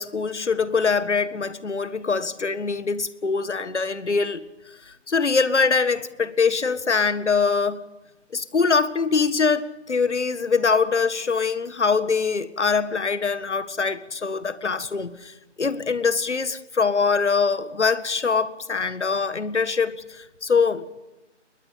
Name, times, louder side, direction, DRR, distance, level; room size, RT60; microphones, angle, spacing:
voice 1, 0.0-4.4 4.9-7.8 8.3-20.9, left 5 dB, 70° left, 1.8 m, -23 dB
21.5 x 19.5 x 8.7 m
figure-of-eight pair, 165°, 36 cm